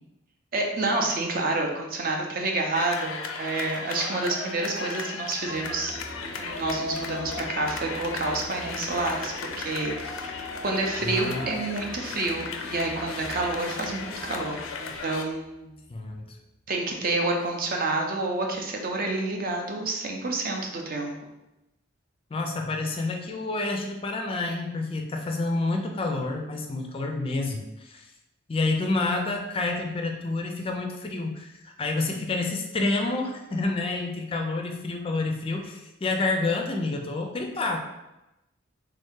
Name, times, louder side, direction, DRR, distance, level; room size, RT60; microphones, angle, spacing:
voice 1, 0.5-15.8 16.7-21.1, right 2 dB, 45° right, 2 dB, 0.6 m, -29 dB
sound 1, 2.8-15.2, left 4 dB, 90° left, 0.4 m, -36 dB
sound 2, 5.3-16.7, right 1 dB, 10° right, 0.7 m, -45 dB
voice 2, 11.0-11.7 15.9-16.4 22.3-28.1 28.5-37.8, left 2 dB, 30° left, 3 dB, 0.4 m, -29 dB
3.4 x 2.7 x 3.5 m, 0.94 s
head